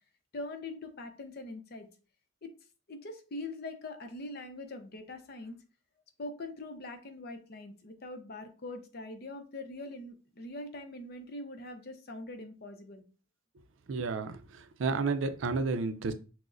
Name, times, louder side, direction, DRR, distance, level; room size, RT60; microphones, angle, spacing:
voice 1, 0.3-1.9 2.4-2.5 2.9-5.6 6.2-13.0, left 2 dB, 50° left, 7 dB, 0.6 m, -42 dB
voice 2, 13.9-14.4 14.8-16.1, right 4 dB, 70° right, 11 dB, 0.4 m, -30 dB
6.1 x 2.1 x 2.4 m, 0.35 s
head